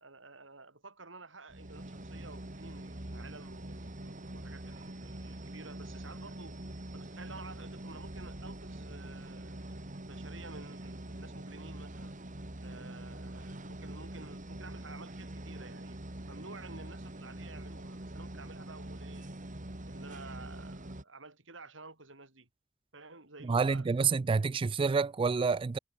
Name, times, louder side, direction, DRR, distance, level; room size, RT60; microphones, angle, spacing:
voice 1, 0.0-6.6 6.9-12.1 12.6-19.3 19.9-22.5 22.9-23.9, right 3 dB, 80° right, 6.7 m, -51 dB
sound 1, 1.5-21.0, right 1 dB, 45° right, 2.3 m, -44 dB
voice 2, 23.4-25.8, right 5 dB, 25° right, 0.3 m, -28 dB
head